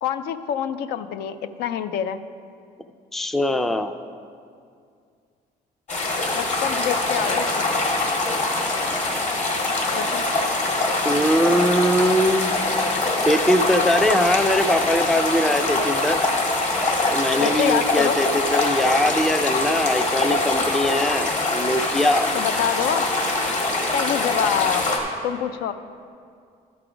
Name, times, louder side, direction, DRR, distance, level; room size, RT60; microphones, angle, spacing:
voice 1, 0.0-2.2 6.3-7.7 10.0-10.2 17.4-18.2 22.3-23.1 23.9-24.9 25.2-25.7, left 9 dB, 75° left, 11 dB, 0.5 m, -26 dB
voice 2, 3.1-3.9 11.0-12.5 13.3-16.2 17.1-22.3, equal, ahead, 9 dB, 0.3 m, -21 dB
sound 1, 5.9-25.0, left 2 dB, 45° left, 1.6 m, -23 dB
12.0 x 4.8 x 5.0 m, 2.3 s
cardioid pair, 110°, 17 cm